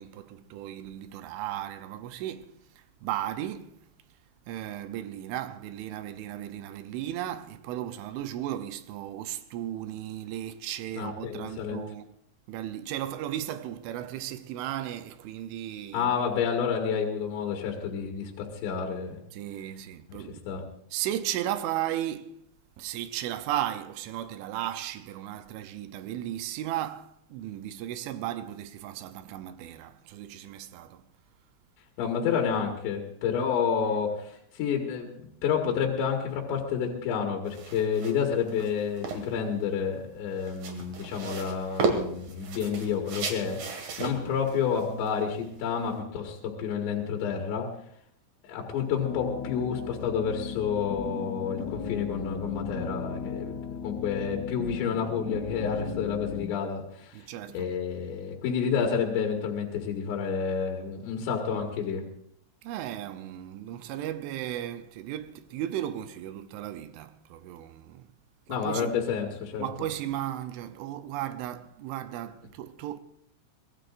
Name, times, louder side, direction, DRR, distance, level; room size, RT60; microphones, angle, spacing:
voice 1, 0.0-2.5 3.0-3.7 4.5-12.1 12.5-16.1 19.3-20.5 20.9-22.4 22.8-31.0 57.1-57.7 62.6-68.0 68.5-68.9 69.6-73.0, right 12 dB, 85° right, 3.1 m, -35 dB
voice 2, 11.0-11.8 15.9-19.2 20.5-20.6 32.0-43.6 44.0-47.7 48.4-53.5 53.8-57.2 57.5-62.0 68.5-69.6, left 7 dB, 70° left, 3.8 m, -29 dB
sound 1, 37.5-46.0, right 4 dB, 50° right, 2.8 m, -35 dB
sound 2, 49.0-56.4, left 6 dB, 90° left, 3.9 m, -36 dB
24.0 x 19.0 x 2.5 m
omnidirectional pair, 5.5 m